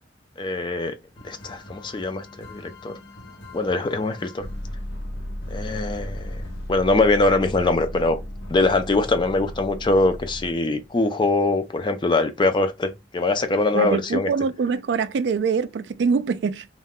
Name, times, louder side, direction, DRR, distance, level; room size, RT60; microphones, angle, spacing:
voice 1, 0.4-0.9 1.2-2.9 3.5-4.5 5.5-6.4 6.7-8.2 8.5-14.3, left 2 dB, 25° left, 0.4 m, -22 dB
sound 1, 1.2-10.9 12.4-12.7 13.2-13.3, left 1 dB, 90° left, 1.0 m, -36 dB
voice 2, 13.7-16.7, right 5 dB, 70° right, 0.3 m, -24 dB
2.4 x 2.2 x 3.5 m
head